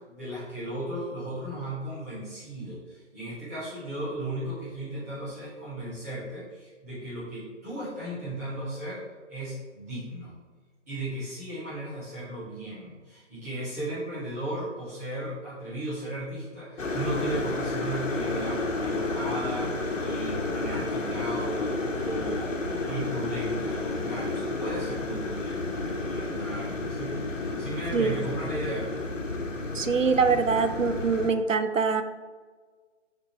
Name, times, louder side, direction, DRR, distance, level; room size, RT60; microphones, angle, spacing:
voice 1, 0.0-9.0 9.3-10.3 10.9-22.6 22.8-28.9, right 1 dB, 15° right, -11 dB, 1.8 m, -36 dB
sound 1, 16.8-31.3, left 2 dB, 80° left, 1.3 m, -31 dB
voice 2, 29.7-32.0, right 5 dB, 90° right, 9 dB, 0.8 m, -24 dB
6.8 x 5.3 x 3.2 m, 1.5 s
figure-of-eight pair, 170°, 38 cm